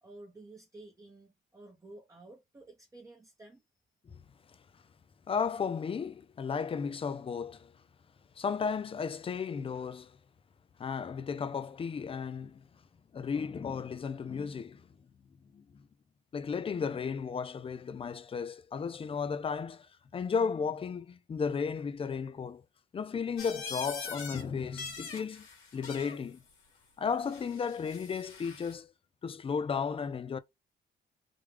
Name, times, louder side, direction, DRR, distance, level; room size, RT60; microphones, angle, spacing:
voice 1, 0.0-3.6, right 2 dB, 15° right, 0.8 m, -52 dB
voice 2, 5.3-7.7 8.4-10.2 10.8-12.6 13.1-14.8 15.5-15.6 16.3-22.6 22.9-25.5 25.7-26.4 27.0-28.9 29.2-30.4, left 6 dB, 30° left, 0.4 m, -34 dB
sound 1, 23.4-24.4 24.7-26.2 27.2-28.8, left 5 dB, 90° left, 1.8 m, -43 dB
3.5 x 2.2 x 3.2 m
cardioid pair, 90°, 20 cm